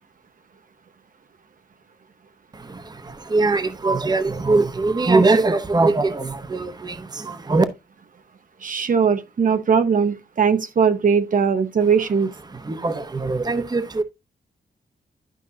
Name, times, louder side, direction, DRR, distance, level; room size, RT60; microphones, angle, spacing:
voice 1, 2.5-7.6 12.5-14.0, right 3 dB, 25° right, 0.9 m, -21 dB
voice 2, 8.6-12.3, right 6 dB, 50° right, 0.9 m, -19 dB
12.0 x 5.4 x 2.7 m
wide cardioid pair, 110°, 17 cm